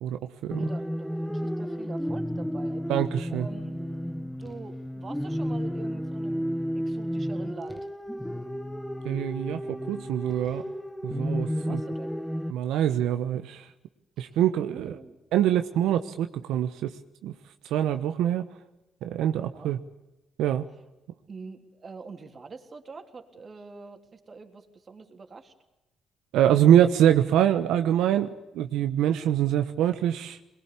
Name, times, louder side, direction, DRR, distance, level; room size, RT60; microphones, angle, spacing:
voice 1, 0.0-0.6 2.9-3.4 9.0-10.6 11.0-11.8 12.5-13.7 14.2-14.9 15.3-16.9 17.2-17.3 17.6-18.4 19.0-19.8 20.4-20.7 26.3-28.3 28.5-30.4, right 10 dB, 90° right, 8 dB, 1.1 m, -24 dB
sound 1, 0.5-12.5, equal, 5° left, 1.3 m, -32 dB
voice 2, 0.6-2.9 3.3-4.0 4.4-7.9 11.5-12.2 14.2-14.3 14.6-15.2 19.4-19.7 21.3-25.5, right 4 dB, 35° right, 5 dB, 3.4 m, -45 dB
22.5 x 21.5 x 8.6 m, 0.99 s
cardioid pair, 90°, 0 cm